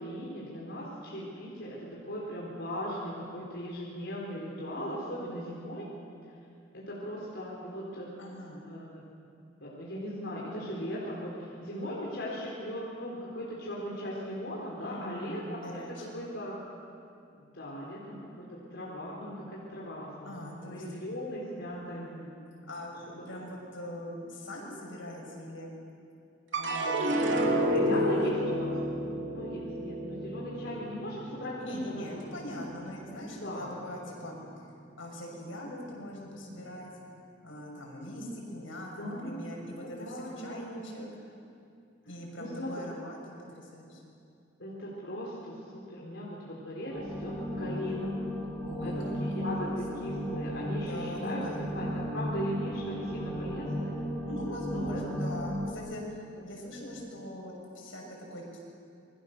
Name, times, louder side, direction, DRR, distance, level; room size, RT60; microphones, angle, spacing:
voice 1, 0.0-5.9 6.7-8.1 8.6-9.0 9.6-16.6 17.3-22.1 27.6-28.8 29.3-32.3 33.4-33.7 39.0-39.4 39.8-40.6 42.4-42.7 44.6-48.2 48.8-48.9 49.2-54.0 54.7-55.0 56.4-56.5, equal, 65° left, -5 dB, 4.2 m, -38 dB
voice 2, 8.2-8.6 14.8-16.2 20.2-20.8 21.6-22.3 22.7-25.7 26.5-27.4 27.7-28.3 31.5-34.4 35.0-36.9 37.4-41.1 42.0-44.0 48.6-50.3 50.9-51.7 54.2-58.6, equal, 85° left, -1 dB, 6.7 m, -42 dB
sound 1, 26.5-33.0 33.4-34.1, equal, 75° right, 3.0 m, -31 dB
sound 2, 46.9-55.7, equal, 10° left, 4.5 m, -35 dB
27.5 x 22.0 x 6.7 m, 2.5 s
head